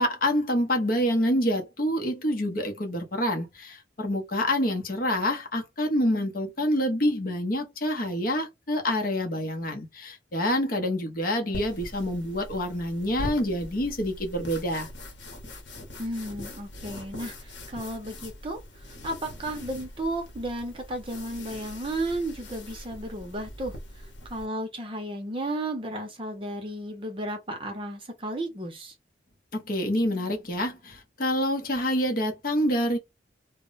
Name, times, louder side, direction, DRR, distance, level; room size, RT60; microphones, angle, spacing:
voice 1, 0.0-14.9 29.5-33.0, equal, 50° left, 0.7 m, -27 dB
sound 1, 11.5-24.5, left 1 dB, 80° left, 0.9 m, -42 dB
voice 2, 16.0-18.6 19.0-23.8 24.2-28.9, right 1 dB, 30° right, 0.6 m, -33 dB
2.1 x 2.1 x 3.8 m
head